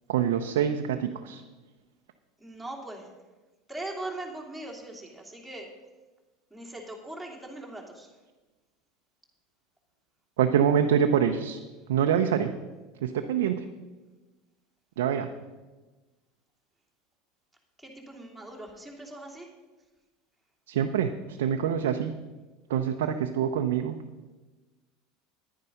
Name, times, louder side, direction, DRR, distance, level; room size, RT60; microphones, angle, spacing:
voice 1, 0.1-1.4 10.4-11.6 11.9-12.5 13.0-13.7 15.0-15.3 20.7-21.1 21.4-22.1 22.7-24.0, right 8 dB, 75° right, 5 dB, 0.6 m, -25 dB
voice 2, 2.4-3.1 3.7-5.7 6.5-8.1 17.8-19.5, right 2 dB, ahead, -2 dB, 3.0 m, -40 dB
10.5 x 9.7 x 5.4 m, 1.2 s
hypercardioid pair, 80°, 0 cm